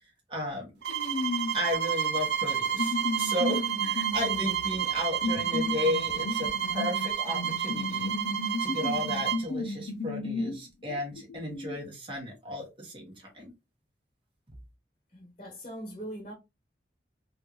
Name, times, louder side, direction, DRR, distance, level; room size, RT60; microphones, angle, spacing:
voice 1, 0.3-0.7 1.5-8.2 8.6-13.5, left 1 dB, 30° right, 1.2 m, -34 dB
sound 1, 0.8-9.5, right 9 dB, 75° right, 0.5 m, -30 dB
sound 2, 0.9-1.7 2.5-10.6 10.9-11.8, left 2 dB, 75° left, 0.6 m, -34 dB
voice 2, 15.1-16.3, right 1 dB, 35° left, 0.9 m, -41 dB
3.4 x 2.5 x 2.9 m
head